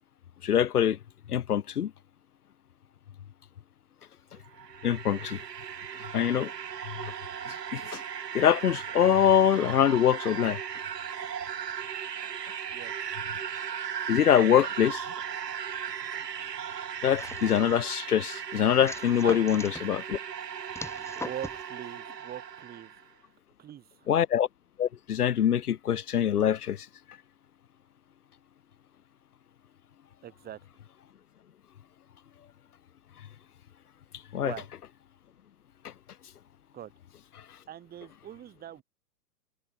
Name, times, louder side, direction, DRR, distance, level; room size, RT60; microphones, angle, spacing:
voice 1, 0.4-1.0 1.3-1.9 4.8-5.4 6.1-6.5 7.5-8.0 8.3-10.6 14.1-15.0 17.0-20.2 24.1-24.5 24.8-26.9 34.3-34.5 35.8-35.9, left 9 dB, 70° left, 1.7 m, -24 dB
sound 1, 4.4-23.0, right 8 dB, 85° right, 1.2 m, -37 dB
sound 2, 17.2-17.9 18.9-19.8 20.7-21.6, left 3 dB, 5° left, 6.1 m, -41 dB
voice 2, 21.2-22.9 23.6-24.1 30.2-30.6 34.3-34.7 36.7-36.9 37.7-38.8, right 11 dB, 20° right, 5.4 m, -41 dB
hypercardioid pair, 130°, 47 cm